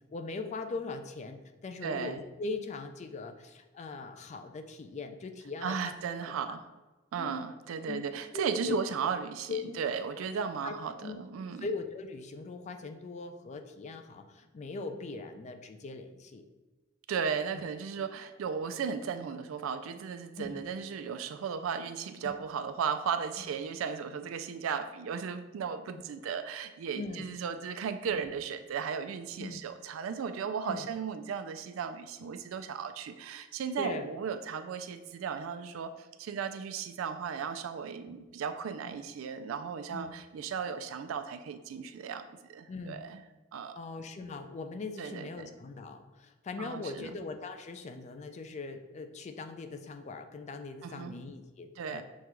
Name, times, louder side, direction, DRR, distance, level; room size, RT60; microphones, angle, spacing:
voice 1, 0.1-5.9 6.2-6.5 7.2-7.5 7.9-8.8 9.5-9.8 10.6-10.7 11.0-11.2 11.6-16.4 17.5-17.6 20.4-20.6 22.2-22.3 23.4-23.5 25.9-26.0 26.9-27.3 28.1-28.3 29.4-29.6 30.7-30.9 33.8-34.1 38.1-38.2 38.8-39.0 39.9-40.1 42.7-43.1 43.7-52.0, left 3 dB, 35° left, 7 dB, 0.3 m, -40 dB
voice 2, 1.8-2.2 5.6-6.6 7.1-11.6 17.1-43.2 43.5-43.8 45.0-45.5 46.6-47.1 50.8-51.1 51.8-52.0, right 6 dB, 85° right, 10 dB, 0.3 m, -36 dB
6.4 x 2.3 x 2.9 m, 1.2 s
head